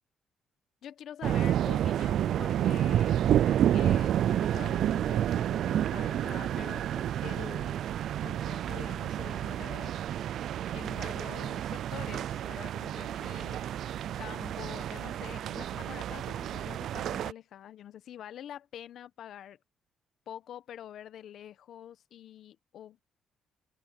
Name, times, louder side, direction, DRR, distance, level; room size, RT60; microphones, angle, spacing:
voice 1, 0.8-7.8 8.2-10.0 10.7-19.6 20.3-23.0, left 10 dB, 70° left, 0.9 m, -46 dB
sound 1, 1.2-17.3, right 11 dB, 70° right, 0.3 m, -30 dB
cardioid pair, 90°, 0 cm